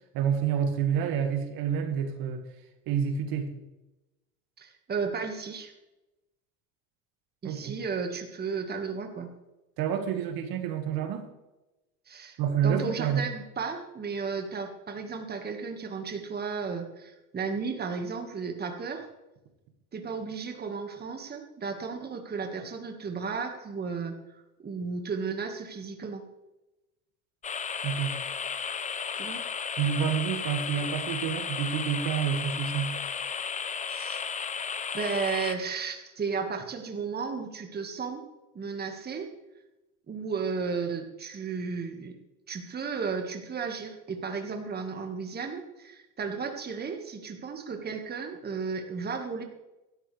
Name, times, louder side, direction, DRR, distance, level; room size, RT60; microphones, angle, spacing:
voice 1, 0.1-2.4 2.9-3.5 7.4-7.8 9.8-11.3 12.4-13.2 27.8-28.1 29.8-33.0, right 8 dB, 55° right, 6 dB, 2.0 m, -28 dB
voice 2, 4.6-5.7 7.4-9.3 12.1-12.4 12.6-19.1 19.9-26.2 29.1-29.4 33.9-34.5 34.9-38.2 38.5-39.3 40.1-42.2 42.5-49.4, right 5 dB, 20° right, 4 dB, 1.8 m, -34 dB
sound 1, 27.4-35.5, left 6 dB, 15° left, 0.7 m, -34 dB
16.5 x 12.5 x 3.4 m, 1.0 s
supercardioid pair, 105°, 43 cm